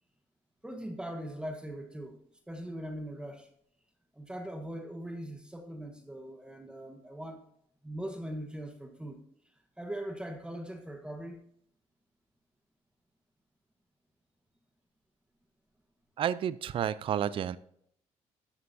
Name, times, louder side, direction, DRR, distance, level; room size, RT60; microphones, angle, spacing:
voice 1, 0.6-2.2 2.5-3.5 4.1-7.4 7.8-9.2 9.8-11.4, right 1 dB, 5° right, 4 dB, 1.2 m, -40 dB
voice 2, 16.2-17.6, right 9 dB, 45° right, 16 dB, 0.4 m, -30 dB
13.0 x 6.7 x 2.6 m, 0.68 s
cardioid pair, 95°, 13 cm